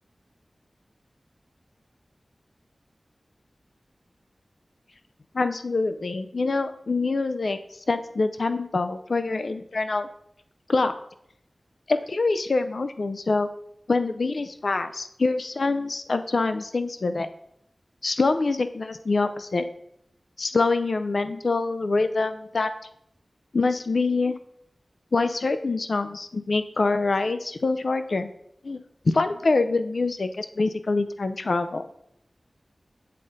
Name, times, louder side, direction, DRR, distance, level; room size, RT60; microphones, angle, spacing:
voice 1, 5.3-7.6 7.9-10.1 10.7-10.9 11.9-13.5 13.9-17.3 18.0-19.7 20.4-22.7 23.5-24.3 25.1-28.3 28.6-28.8 29.0-31.9, left 3 dB, 70° left, 10 dB, 0.5 m, -25 dB
7.5 x 3.7 x 3.9 m, 0.72 s
wide cardioid pair, 60°, 0 cm